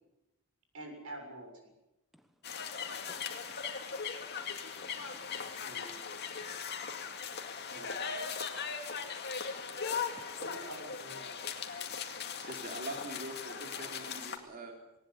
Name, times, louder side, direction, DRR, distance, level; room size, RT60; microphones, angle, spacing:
voice 1, 0.7-1.7 5.6-5.9 7.7-7.9 10.4-11.3, right 1 dB, 70° right, 3 dB, 6.9 m, -46 dB
sound 1, 2.4-14.4, left 6 dB, 50° left, 2.3 m, -39 dB
voice 2, 2.6-3.2 3.7-3.9 4.2-5.6 6.4-7.1 9.6-9.8 10.1-10.4 12.3-12.5, equal, ahead, 7 dB, 1.1 m, -64 dB
voice 3, 12.4-14.8, right 2 dB, 40° right, 2 dB, 3.7 m, -43 dB
19.5 x 19.0 x 8.4 m, 0.96 s
head